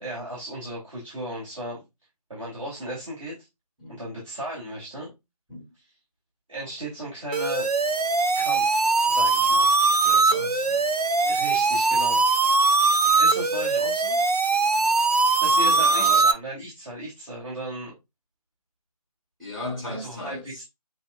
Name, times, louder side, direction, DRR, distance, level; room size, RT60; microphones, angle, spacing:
voice 1, 0.0-1.8 2.3-3.3 3.9-5.1 6.5-7.7 8.3-9.7 11.0-12.2 13.1-14.2 15.4-17.9 20.0-20.6, right 1 dB, 50° right, 2.7 m, -36 dB
sound 1, 7.3-16.3, right 3 dB, 70° right, 0.7 m, -21 dB
voice 2, 10.0-10.9 14.7-15.0 15.6-16.3 19.4-20.6, left 1 dB, ahead, 0.8 m, -37 dB
7.2 x 2.7 x 2.3 m
figure-of-eight pair, 160°, 20 cm